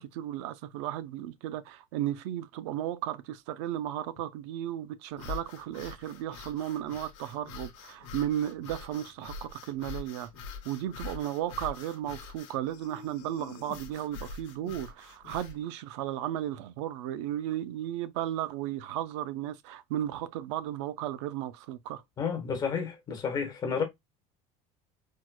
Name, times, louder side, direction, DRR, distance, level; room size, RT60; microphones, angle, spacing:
voice 1, 0.0-10.3 10.6-22.0, right 12 dB, 90° right, 0.4 m, -34 dB
sound 1, 5.1-15.6, left 5 dB, 90° left, 1.0 m, -44 dB
voice 2, 22.2-23.8, left 6 dB, 25° left, 1.0 m, -31 dB
4.5 x 2.1 x 2.2 m
cardioid pair, 155°, 15 cm